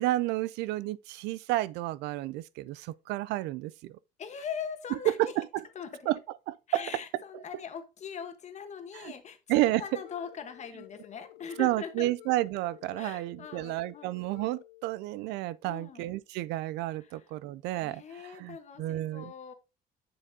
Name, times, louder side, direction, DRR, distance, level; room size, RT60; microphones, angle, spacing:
voice 1, 0.0-4.0 5.1-5.6 6.1-6.2 6.5-6.8 9.0-9.1 9.5-10.0 11.6-19.3, right 16 dB, 90° right, 0.4 m, -31 dB
voice 2, 4.2-5.3 5.7-6.1 6.7-12.1 13.0-14.3 15.6-16.2 17.0-17.3 17.8-19.5, left 7 dB, 45° left, 1.2 m, -41 dB
sound 1, 9.8-14.8, left 16 dB, 85° left, 0.5 m, -53 dB
7.1 x 6.8 x 2.7 m
cardioid pair, 110°, 17 cm